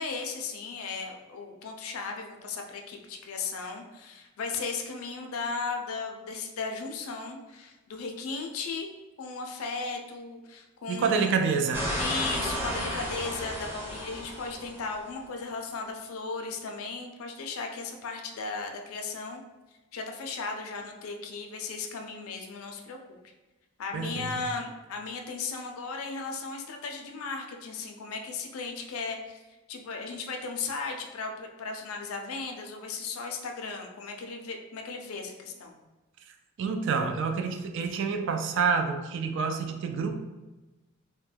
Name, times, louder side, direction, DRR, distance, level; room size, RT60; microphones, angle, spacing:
voice 1, 0.0-8.9 9.2-11.3 12.0-19.4 19.9-23.2 23.8-29.4 29.7-35.8, left 4 dB, 75° left, 3 dB, 0.4 m, -36 dB
voice 2, 10.9-11.9 23.9-24.3 36.6-40.2, right 5 dB, 60° right, 5 dB, 0.3 m, -28 dB
sound 1, 11.7-14.9, equal, 10° right, 0.6 m, -33 dB
2.2 x 2.1 x 3.2 m, 1.1 s
head